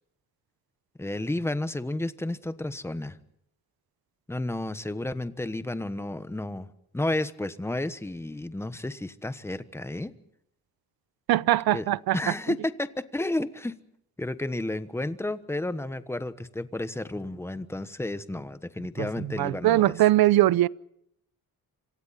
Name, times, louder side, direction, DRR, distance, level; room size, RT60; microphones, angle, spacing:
voice 1, 1.0-3.2 4.3-6.7 6.9-10.1 11.7-11.8 12.1-13.7 14.2-19.9, left 1 dB, 5° left, 1.2 m, -32 dB
voice 2, 11.3-12.2 19.0-20.7, right 15 dB, 80° right, 0.7 m, -22 dB
27.0 x 26.5 x 4.2 m
cardioid pair, 140°, 36 cm